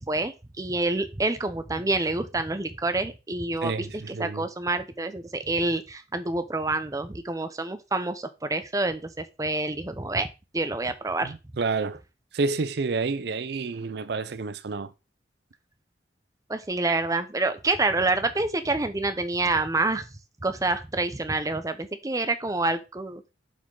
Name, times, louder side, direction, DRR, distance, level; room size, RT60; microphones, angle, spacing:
voice 1, 0.0-10.3 10.5-11.4 16.5-20.1 20.4-23.3, right 2 dB, 20° right, 0.6 m, -27 dB
voice 2, 3.6-4.4 11.2-12.0 12.3-14.9, right 4 dB, 60° right, 0.5 m, -29 dB
7.3 x 4.4 x 3.8 m
head